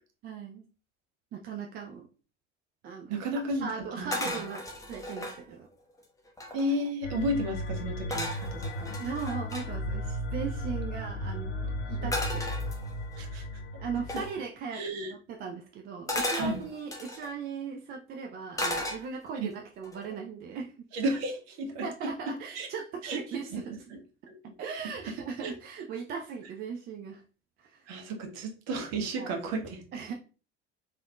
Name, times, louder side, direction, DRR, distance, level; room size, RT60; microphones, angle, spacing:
voice 1, 0.2-0.6 1.3-2.1 2.8-4.6 4.9-5.7 9.0-12.5 13.8-20.7 21.8-23.8 24.6-27.2 27.6-27.9 29.2-29.3 29.9-30.1, right 5 dB, 30° right, 2 dB, 0.4 m, -38 dB
voice 2, 3.1-3.7 4.0-4.4 6.5-9.0 12.0-12.1 13.2-13.4 14.1-14.2 14.7-15.1 16.3-16.6 19.4-19.5 20.9-22.7 23.0-23.4 23.9-24.0 24.3-24.4 25.4-25.5 27.9-29.8, right 1 dB, 45° right, 3 dB, 0.8 m, -33 dB
Tin metal can, 4.1-5.4 6.0-6.1 6.3-6.9 8.1-9.7 12.1-13.2 14.1-14.4 16.1-17.3 18.6-19.4 19.8-20.2, left 1 dB, 10° left, 0.7 m, -35 dB
sound 1, 7.0-14.3, equal, 70° left, 0.6 m, -35 dB
3.3 x 2.4 x 2.2 m, 0.35 s
figure-of-eight pair, 60°, 36 cm